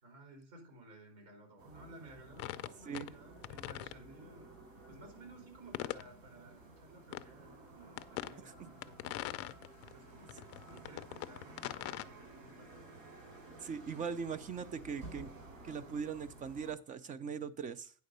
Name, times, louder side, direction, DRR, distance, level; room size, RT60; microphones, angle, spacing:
voice 1, 0.0-4.5 4.9-9.1 9.8-12.8 14.5-14.6, right 2 dB, 85° right, 3 dB, 4.4 m, -56 dB
sound 1, 1.6-16.7, right 2 dB, 70° right, 3.2 m, -54 dB
sound 2, 2.4-3.1 3.4-4.0 5.7-6.1 7.1-7.2 8.0-8.3 8.8-9.9 10.3-12.0, left 16 dB, 45° left, 0.4 m, -41 dB
voice 2, 13.6-15.3 15.6-17.9, right 6 dB, 25° right, 15 dB, 0.3 m, -40 dB
9.4 x 4.0 x 6.6 m, 0.43 s
cardioid pair, 160°, 34 cm